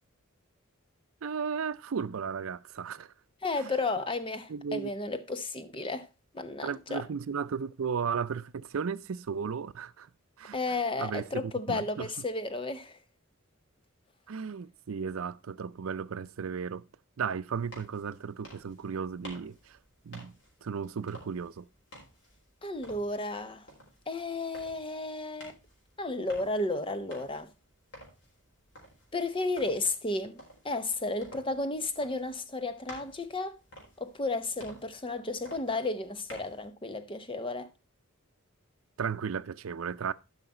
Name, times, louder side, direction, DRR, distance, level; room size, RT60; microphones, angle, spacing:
voice 1, 1.2-3.1 3.6-3.7 4.5-4.9 6.6-10.1 10.4-10.6 11.0-12.1 14.3-16.8 17.2-19.8 20.0-20.3 20.6-21.7 39.0-40.1, right 6 dB, 85° right, 0.5 m, -35 dB
voice 2, 3.4-6.1 6.3-7.1 10.5-13.0 22.6-23.7 24.1-25.5 26.0-27.5 29.1-33.6 34.0-37.7, left 2 dB, 25° left, 0.8 m, -33 dB
sound 1, 17.5-36.7, equal, 60° left, 4.1 m, -53 dB
12.0 x 5.7 x 4.2 m
head